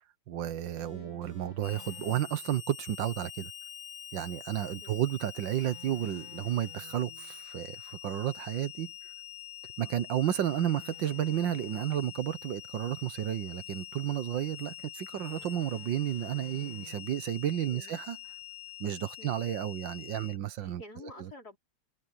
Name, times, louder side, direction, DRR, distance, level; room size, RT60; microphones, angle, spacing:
voice 1, 0.3-3.5 4.1-8.9 9.8-18.2 18.8-20.8 21.2-21.3, right 11 dB, 65° right, 1.6 m, -32 dB
sound 1, 0.8-2.6 5.6-7.4 10.3-12.3 15.2-17.4, left 5 dB, 25° left, 1.2 m, -55 dB
Harmonica, 1.6-20.4, left 12 dB, 70° left, 3.8 m, -46 dB
voice 2, 20.6-21.6, left 2 dB, 45° left, 4.7 m, -50 dB
omnidirectional pair, 2.3 m